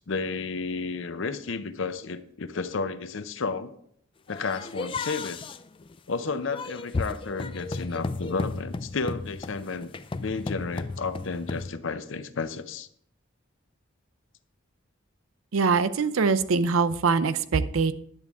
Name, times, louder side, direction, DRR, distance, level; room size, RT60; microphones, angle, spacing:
voice 1, 0.0-3.7 4.3-5.4 6.1-9.9 10.2-12.9, left 4 dB, 65° left, 11 dB, 0.6 m, -32 dB
sound 1, 4.3-11.7, left 3 dB, 25° left, 0.3 m, -34 dB
voice 2, 15.5-17.9, right 4 dB, 85° right, 13 dB, 0.6 m, -23 dB
10.5 x 8.3 x 3.6 m, 0.67 s
head